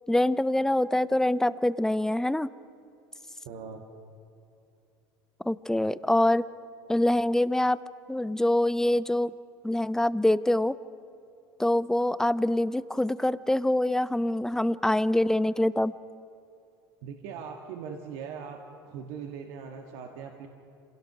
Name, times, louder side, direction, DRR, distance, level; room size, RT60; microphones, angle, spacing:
voice 1, 0.1-2.5 5.4-6.5 6.9-7.8 8.1-9.3 9.6-10.8 11.6-15.9, left 1 dB, 5° left, 17 dB, 0.5 m, -25 dB
voice 2, 3.4-3.8 17.0-18.6 18.8-20.5, right 6 dB, 65° right, 2 dB, 1.7 m, -40 dB
26.5 x 17.0 x 6.0 m, 2.7 s
hypercardioid pair, 85°, 12 cm